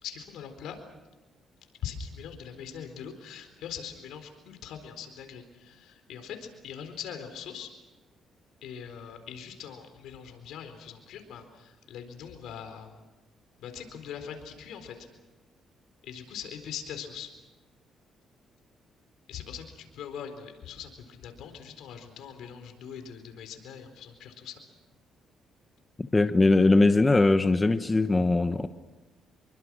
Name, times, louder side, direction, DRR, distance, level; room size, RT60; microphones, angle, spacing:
voice 1, 0.0-0.8 1.8-7.7 8.6-13.0 13.6-15.0 16.0-17.3 19.3-24.6, left 8 dB, 85° left, 7 dB, 4.1 m, -42 dB
voice 2, 26.0-28.7, left 2 dB, 20° left, 9 dB, 1.1 m, -21 dB
27.0 x 23.5 x 6.3 m, 1.1 s
cardioid pair, 90°, 0 cm